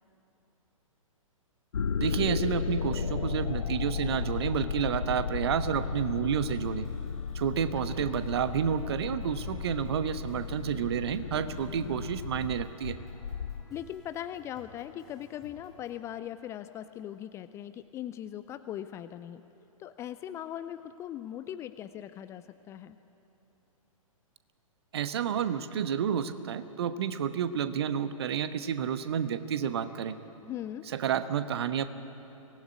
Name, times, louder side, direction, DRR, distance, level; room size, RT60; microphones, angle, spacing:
sound 1, 1.7-13.6, left 6 dB, 65° left, 0.6 m, -34 dB
voice 1, 2.0-6.9 7.3-13.0 24.9-30.1 30.9-31.9, right 8 dB, 45° right, 11 dB, 1.1 m, -30 dB
sound 2, 6.4-16.0, left 1 dB, ahead, 5.9 m, -54 dB
voice 2, 13.7-19.4 19.8-23.0 30.4-30.9, left 11 dB, 15° left, 11 dB, 0.5 m, -40 dB
23.5 x 19.0 x 9.7 m, 2.9 s
figure-of-eight pair, 115°, 18 cm